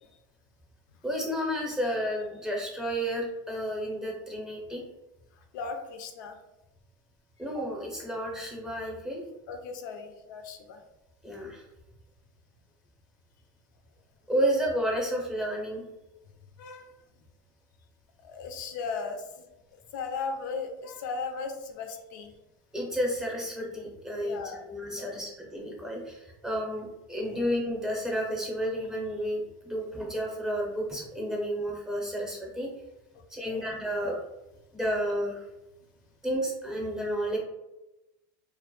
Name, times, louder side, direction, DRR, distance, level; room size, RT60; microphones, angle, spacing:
voice 1, 1.0-4.8 7.4-9.2 11.2-11.6 14.3-15.8 22.7-32.7 33.3-34.2 34.7-35.4 36.2-37.4, equal, 5° right, -2 dB, 0.6 m, -31 dB
voice 2, 5.5-6.4 9.5-10.8 16.6-16.9 18.2-19.5 19.7-22.3 24.1-24.7 24.9-25.3 27.2-27.4 33.4-33.6, left 4 dB, 75° left, 5 dB, 0.4 m, -37 dB
2.1 x 2.0 x 2.9 m, 0.97 s
supercardioid pair, 120°, 10 cm